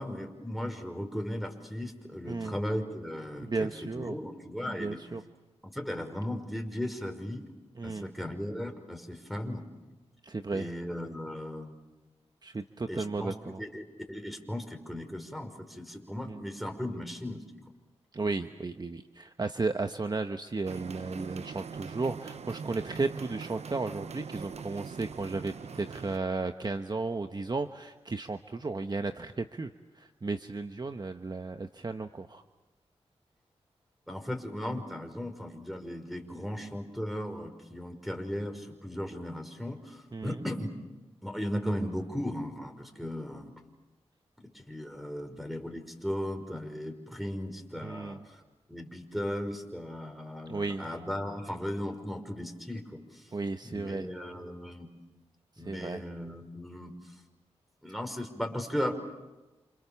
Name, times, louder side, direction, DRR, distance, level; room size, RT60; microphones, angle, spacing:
voice 1, 0.0-3.7 4.0-5.0 5.6-7.4 7.8-9.6 10.5-11.8 12.9-17.4 34.1-40.7 41.2-43.5 44.4-48.4 48.7-53.2 53.6-54.9 55.6-57.0 57.8-59.0, equal, ahead, 5 dB, 5.7 m, -36 dB
voice 2, 3.4-4.2 4.7-5.2 7.8-8.1 10.2-10.7 12.4-13.6 16.3-16.4 18.1-32.4 40.1-40.4 47.8-48.2 50.5-50.9 53.3-54.1 55.7-56.0, right 3 dB, 40° right, 7 dB, 1.1 m, -34 dB
sound 1, 20.6-26.2, right 6 dB, 70° right, 0.9 m, -42 dB
28.5 x 28.5 x 7.2 m, 1.1 s
cardioid pair, 50°, 11 cm